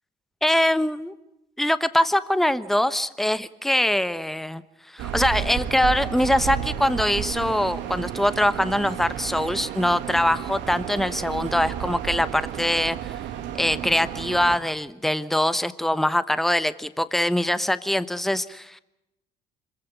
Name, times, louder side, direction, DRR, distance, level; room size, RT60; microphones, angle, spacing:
voice 1, 0.4-1.1 1.6-4.6 4.9-13.0 13.6-18.8, left 1 dB, ahead, 15 dB, 1.1 m, -23 dB
sound 1, 5.0-14.6, right 10 dB, 65° right, 1.9 m, -32 dB
26.0 x 15.5 x 9.6 m, 0.89 s
hypercardioid pair, 55°, 20 cm